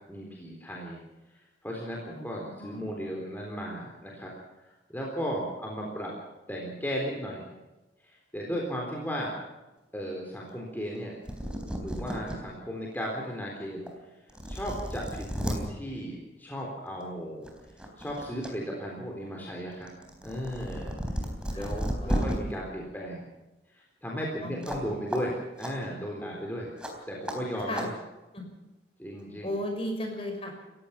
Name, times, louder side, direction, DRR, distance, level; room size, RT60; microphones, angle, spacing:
voice 1, 0.1-1.0 1.3-4.3 4.9-6.1 6.5-7.5 8.0-9.4 9.9-11.1 11.8-13.8 14.5-17.5 18.0-19.9 20.2-21.0 21.5-23.2 23.7-26.7 27.1-27.9 29.0-29.5, equal, 10° left, -2 dB, 3.8 m, -35 dB
voice 2, 2.1-2.9 21.5-22.3 24.4-25.0 27.7-27.9 28.3-28.5 29.4-30.7, left 1 dB, 30° left, 3 dB, 5.8 m, -36 dB
sound 1, 11.0-11.1 11.2-12.4 12.9-13.0 13.9-14.0 14.3-15.6 16.9-17.0 17.4-18.5 18.8-22.3 24.6-24.8 25.1-25.2 25.6-25.7 26.8-26.9 27.3-27.4 27.7-27.9, equal, 5° right, 3.8 m, -33 dB
29.5 x 15.5 x 5.9 m, 1.1 s
head